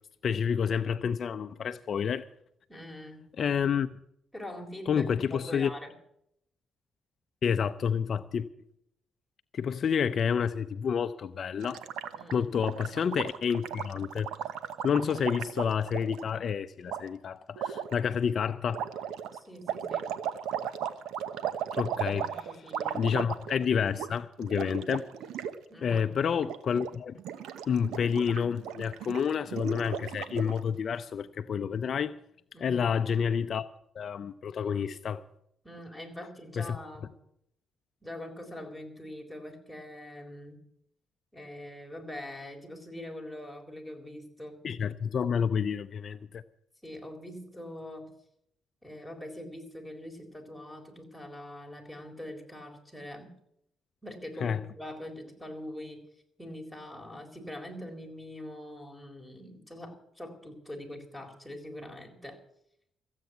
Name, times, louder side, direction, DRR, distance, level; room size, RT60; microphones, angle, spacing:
voice 1, 0.2-2.3 3.4-3.9 4.9-5.7 7.4-8.5 9.5-11.8 12.3-14.3 14.8-18.9 21.8-22.3 22.9-25.1 25.8-27.1 27.7-32.2 32.6-33.7 34.0-35.2 36.6-36.8 44.6-46.4 54.4-54.6, left 7 dB, 55° left, 0.5 m, -29 dB
voice 2, 2.7-3.3 4.3-5.9 12.1-12.5 19.3-20.2 21.9-23.0 25.7-26.0 32.5-32.9 35.6-37.1 38.0-40.6 41.3-44.6 46.8-48.1 48.8-53.4 54.0-56.0 56.4-62.4, left 1 dB, ahead, 4.0 m, -43 dB
Gurgling, 11.6-16.2 16.9-17.0 17.6-17.9 18.7-23.7 23.9-24.1 24.4-25.6 25.8-26.0 26.4-26.9 27.2-30.6, right 9 dB, 85° right, 0.9 m, -36 dB
15.0 x 8.2 x 9.2 m
cardioid pair, 90°, 0 cm